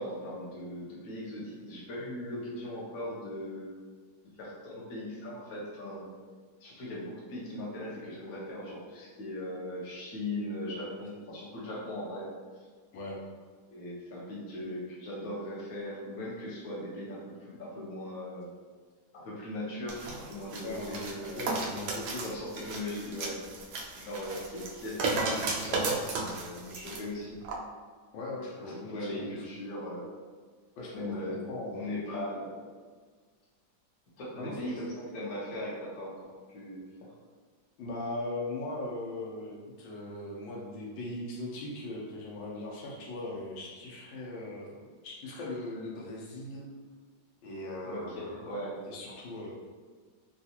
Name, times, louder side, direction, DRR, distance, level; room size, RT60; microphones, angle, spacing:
voice 1, 0.0-3.7 4.4-6.1 6.6-12.3 12.5-12.7 13.7-18.5 19.1-21.5 22.2-23.4 23.9-27.4 28.6-30.1 30.9-31.4 31.7-32.6 34.2-36.2 36.5-37.1 47.8-48.8, left 1 dB, 60° left, -6 dB, 1.3 m, -39 dB
sound 1, 19.9-27.0 27.4-27.6, right 3 dB, 80° right, 0.8 m, -34 dB
voice 2, 20.6-22.4 28.1-29.4 30.8-31.9 34.4-34.8 37.8-46.7 47.4-48.3 48.8-49.5, left 2 dB, 90° left, -3 dB, 1.5 m, -39 dB
3.8 x 2.4 x 2.8 m, 1.5 s
omnidirectional pair, 2.0 m